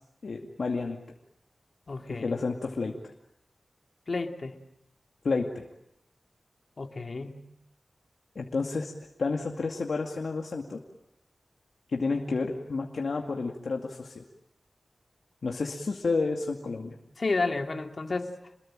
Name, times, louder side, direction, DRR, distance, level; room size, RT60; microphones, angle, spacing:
voice 1, 0.2-1.0 2.1-2.9 5.2-5.7 8.4-8.9 9.2-10.8 11.9-14.2 15.4-17.0, left 4 dB, 75° left, 1 dB, 2.3 m, -30 dB
voice 2, 1.9-2.4 4.1-4.6 6.8-7.4 17.2-18.4, left 3 dB, 60° left, 5 dB, 2.6 m, -31 dB
28.5 x 21.5 x 8.9 m, 0.77 s
cardioid pair, 55°, 0 cm